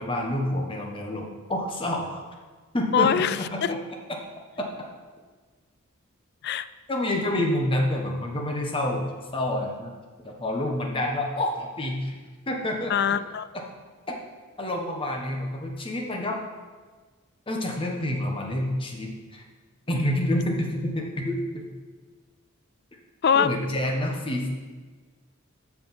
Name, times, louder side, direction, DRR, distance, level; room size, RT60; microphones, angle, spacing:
voice 1, 0.0-2.2 2.7-3.3 3.5-3.8 4.6-4.7 6.9-9.9 10.2-12.2 12.5-13.2 13.5-13.6 14.6-16.4 17.5-19.4 19.9-21.6 23.3-24.5, left 1 dB, 25° left, 0 dB, 1.3 m, -28 dB
voice 2, 2.9-3.7 6.4-6.7 12.9-13.5 23.2-23.5, left 7 dB, 50° left, 14 dB, 0.4 m, -23 dB
13.5 x 4.8 x 5.7 m, 1.4 s
head